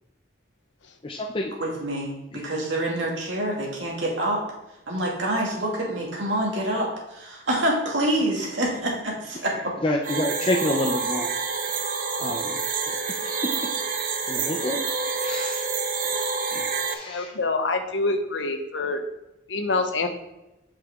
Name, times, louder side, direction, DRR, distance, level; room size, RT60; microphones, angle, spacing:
voice 1, 1.0-1.5 2.3-2.4 9.8-11.3 12.2-12.6 12.9-13.0 13.2-13.3 14.3-14.8 15.2-15.6 16.5-17.3, left 1 dB, 25° left, 1 dB, 0.5 m, -28 dB
voice 2, 1.6-4.4 4.9-9.7, right 1 dB, 70° right, -2 dB, 2.2 m, -26 dB
sound 1, 10.0-16.9, right 4 dB, 45° right, 0.7 m, -28 dB
voice 3, 17.1-19.0 19.5-20.1, left 3 dB, 70° left, 6 dB, 0.9 m, -26 dB
8.1 x 5.7 x 3.6 m, 0.95 s
head